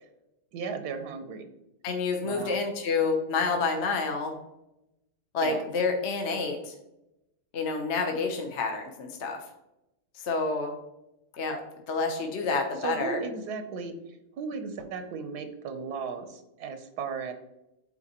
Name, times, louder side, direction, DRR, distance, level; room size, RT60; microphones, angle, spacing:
voice 1, 0.5-1.5 2.2-2.6 5.4-5.6 12.8-17.3, right 5 dB, 90° right, 7 dB, 1.3 m, -36 dB
voice 2, 1.8-4.4 5.3-6.7 7.5-9.4 10.1-10.7 11.3-11.6 11.9-13.2, left 4 dB, 50° left, 3 dB, 1.1 m, -28 dB
8.7 x 4.0 x 2.9 m, 0.88 s
omnidirectional pair, 1.7 m